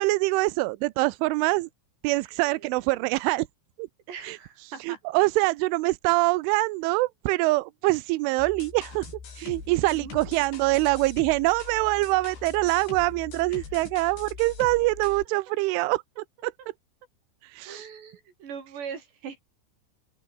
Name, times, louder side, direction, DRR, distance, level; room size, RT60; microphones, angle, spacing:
voice 1, 0.0-1.7 2.0-3.5 3.8-3.9 4.2-4.4 4.8-9.1 9.4-16.0 16.4-16.5 17.4-17.9, right 21 dB, 90° right, 3.1 m, -24 dB
voice 2, 2.2-3.0 4.1-5.0 5.4-5.5 9.8-10.8 13.5-13.9 17.6-19.4, right 7 dB, 60° right, 6.7 m, -42 dB
sound 1, 8.4-15.2, left 6 dB, 65° left, 7.6 m, -42 dB
open air
omnidirectional pair, 5.6 m